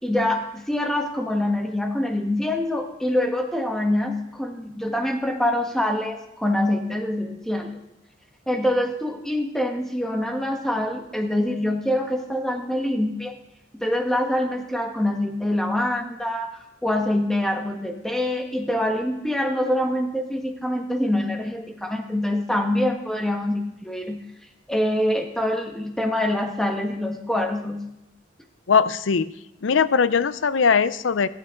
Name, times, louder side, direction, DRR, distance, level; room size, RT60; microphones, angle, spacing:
voice 1, 0.0-7.7 8.5-13.3 13.8-16.5 16.8-24.2 24.7-27.8, left 1 dB, 5° left, 3 dB, 1.6 m, -25 dB
voice 2, 28.7-29.3 29.6-31.3, left 6 dB, 85° left, 15 dB, 0.6 m, -20 dB
16.0 x 15.5 x 3.8 m, 0.85 s
head